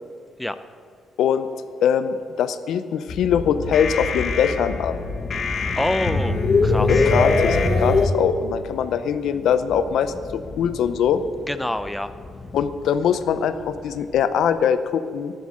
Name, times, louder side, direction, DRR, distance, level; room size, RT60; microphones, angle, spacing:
voice 1, 1.8-5.0 6.9-11.2 12.5-15.3, left 8 dB, 75° left, 11 dB, 0.7 m, -22 dB
sound 1, 3.1-8.1, left 3 dB, 50° left, 1.5 m, -22 dB
sound 2, 5.2-14.7, left 2 dB, 30° left, 1.3 m, -39 dB
voice 2, 5.7-7.1 11.5-12.1, left 1 dB, 5° left, 11 dB, 0.7 m, -26 dB
11.5 x 10.0 x 7.7 m, 2.1 s
cardioid pair, 90°, 0 cm